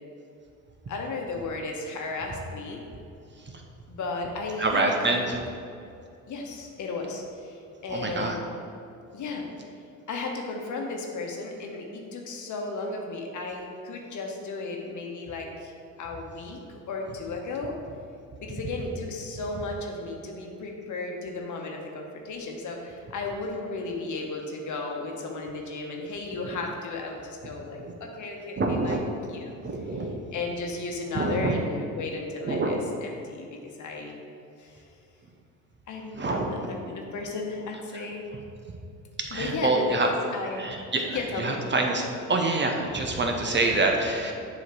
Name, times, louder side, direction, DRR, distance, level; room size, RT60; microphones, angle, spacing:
voice 1, 0.9-2.8 3.9-5.2 6.3-8.4 9.1-9.5 10.1-15.7 16.0-17.8 18.4-29.0 29.3-29.5 29.9-34.1 34.6-34.8 35.9-38.2 39.3-40.6 41.1-41.6, left 3 dB, 50° left, 1 dB, 1.2 m, -34 dB
voice 2, 4.6-5.4 7.9-8.4 28.6-29.0 29.6-30.2 31.1-31.5 32.5-32.8 36.2-36.7 39.3-40.1 40.6-42.0 42.3-44.3, right 2 dB, 30° right, 2 dB, 0.9 m, -26 dB
7.2 x 3.2 x 6.1 m, 2.6 s
hypercardioid pair, 55°, 39 cm